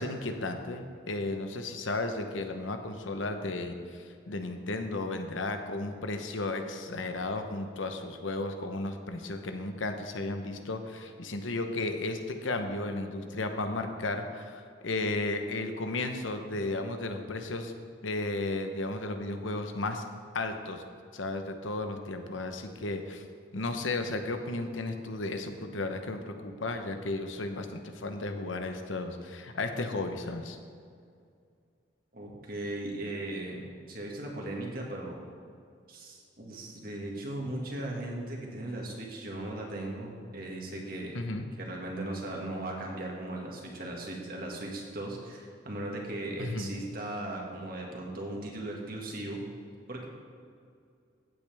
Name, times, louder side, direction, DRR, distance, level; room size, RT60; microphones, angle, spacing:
voice 1, 0.0-17.7 18.0-20.0 20.3-20.8 21.1-23.3 23.5-30.6 41.1-41.5 46.4-46.7, left 2 dB, 85° left, 6 dB, 1.0 m, -34 dB
voice 2, 32.1-33.6 33.9-35.2 35.9-41.1 41.6-49.4 49.9-50.1, right 1 dB, 50° right, -1 dB, 1.9 m, -37 dB
15.5 x 8.5 x 3.5 m, 2.3 s
head